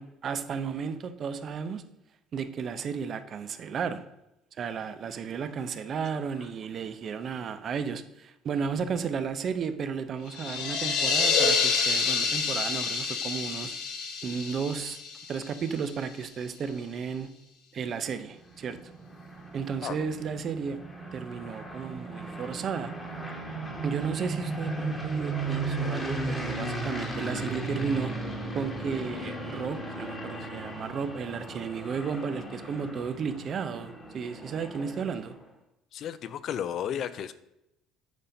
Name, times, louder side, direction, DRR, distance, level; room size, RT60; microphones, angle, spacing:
voice 1, 0.0-1.8 2.3-4.0 4.6-13.7 14.2-15.0 15.3-17.3 17.7-18.8 19.5-20.8 21.1-22.9 23.8-28.1 28.5-35.3, right 6 dB, 35° right, 11 dB, 0.6 m, -33 dB
sound 1, 10.3-15.9, left 5 dB, 65° left, 1.7 m, -28 dB
sound 2, 18.3-35.4, right 2 dB, 10° left, 1.3 m, -36 dB
voice 2, 35.9-37.3, left 9 dB, 45° left, 14 dB, 0.4 m, -33 dB
9.3 x 4.3 x 5.1 m, 0.86 s
cardioid pair, 155°, 0 cm